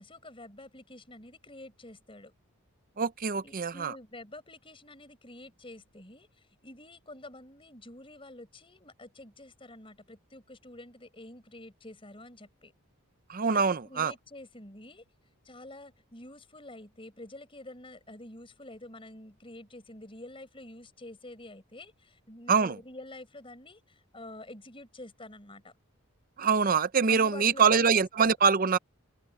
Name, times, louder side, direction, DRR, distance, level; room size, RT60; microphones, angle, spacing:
voice 1, 0.0-2.3 3.4-6.3 6.6-12.7 13.5-15.0 15.4-25.7 27.1-27.9 28.2-28.3, left 1 dB, 25° left, 4.9 m, -48 dB
voice 2, 3.0-3.9 13.3-14.1 22.5-22.8 26.4-28.8, right 5 dB, 40° right, 0.6 m, -24 dB
head